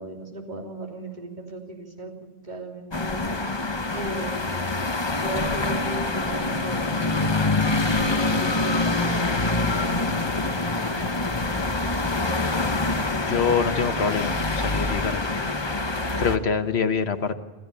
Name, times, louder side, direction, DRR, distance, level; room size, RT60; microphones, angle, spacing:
voice 1, 0.0-2.1 2.4-3.2 3.9-4.7 5.1-7.2 8.0-10.6, right 2 dB, 45° right, 1 dB, 3.2 m, -36 dB
sound 1, 2.9-16.4, left 2 dB, 25° left, 1.0 m, -25 dB
voice 2, 13.3-15.2 16.2-17.3, left 6 dB, 80° left, 8 dB, 1.4 m, -25 dB
27.0 x 14.0 x 8.3 m, 1.3 s
omnidirectional pair, 1.1 m